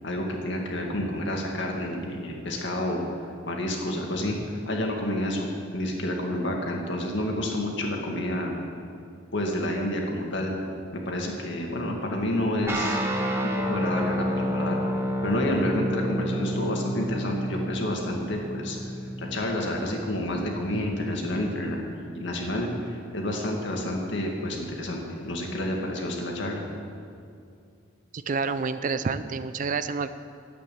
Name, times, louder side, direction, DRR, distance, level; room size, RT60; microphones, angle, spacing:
voice 1, 0.0-3.0 3.5-8.6 9.3-10.5 11.1-13.0 13.7-14.8 15.2-18.8 19.2-26.6, left 1 dB, 65° left, 0 dB, 2.1 m, -29 dB
sound 1, 12.7-21.6, equal, 15° right, 1.1 m, -30 dB
voice 2, 28.1-30.1, right 4 dB, 40° right, 12 dB, 0.4 m, -28 dB
10.5 x 8.5 x 8.5 m, 2.3 s
head